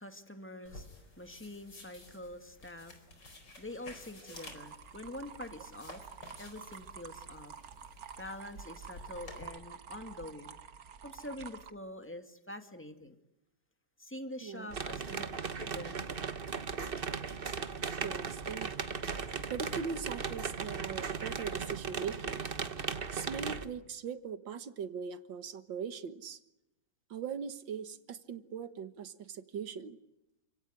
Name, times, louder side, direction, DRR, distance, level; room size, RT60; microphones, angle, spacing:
voice 1, 0.0-6.1 6.4-7.5 8.2-10.5 11.0-13.1 14.0-15.2 15.6-16.0, left 1 dB, 5° left, 7 dB, 2.2 m, -46 dB
sound 1, 0.7-9.4, left 2 dB, 65° left, 5.1 m, -53 dB
sound 2, 4.3-11.7, right 7 dB, 55° right, 1.5 m, -49 dB
voice 2, 14.4-14.7 18.0-18.7 19.5-22.5 23.1-26.4 27.1-30.0, right 6 dB, 80° right, 11 dB, 2.1 m, -40 dB
sound 3, 14.7-23.7, right 5 dB, 35° right, 1.3 m, -37 dB
29.5 x 17.5 x 9.9 m, 0.89 s
omnidirectional pair, 2.0 m